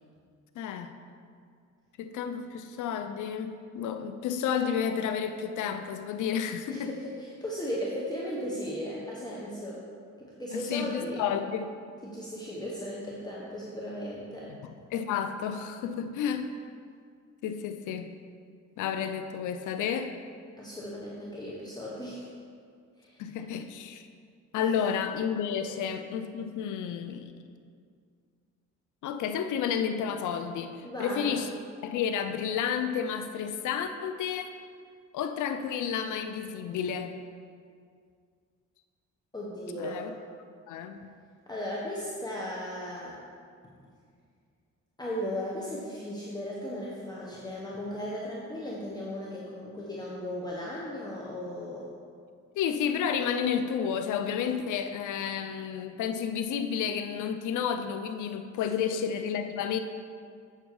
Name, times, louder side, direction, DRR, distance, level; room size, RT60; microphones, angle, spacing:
voice 1, 0.6-0.9 2.0-6.9 10.5-11.7 14.5-14.6 14.9-16.5 17.4-18.2 18.8-20.1 23.2-24.0 24.5-27.3 29.0-31.5 31.8-34.5 35.1-37.2 39.8-40.1 40.7-41.0 52.6-59.8, left 7 dB, 80° left, 8 dB, 0.6 m, -31 dB
voice 2, 6.7-9.8 10.2-11.2 12.0-14.5 20.6-22.2 23.0-23.2 24.5-24.8 25.6-25.7 30.8-31.4 39.3-40.1 41.5-43.2 45.0-51.9 58.8-59.2, equal, 15° left, -5 dB, 1.2 m, -36 dB
7.9 x 6.8 x 4.7 m, 2.2 s
cardioid pair, 90°, 30 cm